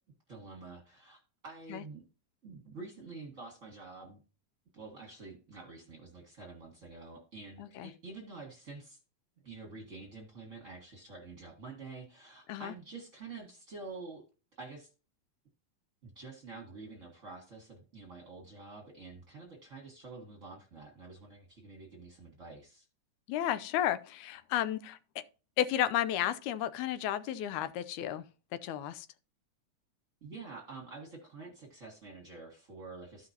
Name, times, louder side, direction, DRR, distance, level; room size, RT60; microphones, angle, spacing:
voice 1, 0.3-2.0 2.4-4.2 4.7-9.0 9.4-14.2 14.5-14.9 16.0-22.9 30.2-33.3, right 3 dB, 35° right, 1.3 m, -48 dB
voice 2, 7.6-7.9 12.5-12.7 23.3-25.0 25.6-28.2 28.5-29.1, left 11 dB, 85° left, 2.1 m, -32 dB
14.0 x 5.8 x 2.8 m
omnidirectional pair, 3.4 m